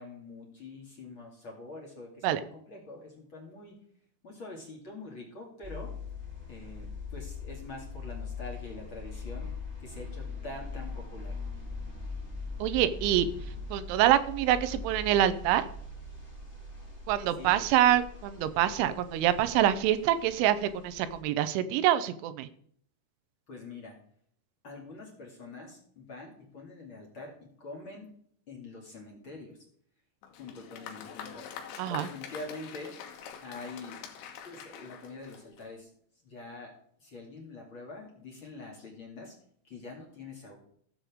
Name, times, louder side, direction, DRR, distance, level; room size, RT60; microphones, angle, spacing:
voice 1, 0.0-3.8 4.2-5.9 6.5-9.5 9.8-11.4 17.4-17.7 23.5-24.0 24.6-28.1 28.5-29.6 30.4-31.6 31.9-34.0 34.4-35.9 36.2-39.3 39.6-40.5, left 3 dB, 40° left, -1 dB, 2.2 m, -45 dB
sound 1, 5.6-21.2, left 4 dB, 10° left, 1.9 m, -41 dB
voice 2, 12.6-13.3 13.7-15.6 17.1-22.5 31.8-32.1, right 12 dB, 85° right, 12 dB, 3.1 m, -26 dB
Applause, 30.2-35.8, left 8 dB, 75° left, 3.5 m, -45 dB
15.5 x 7.4 x 3.6 m, 0.63 s
omnidirectional pair, 5.5 m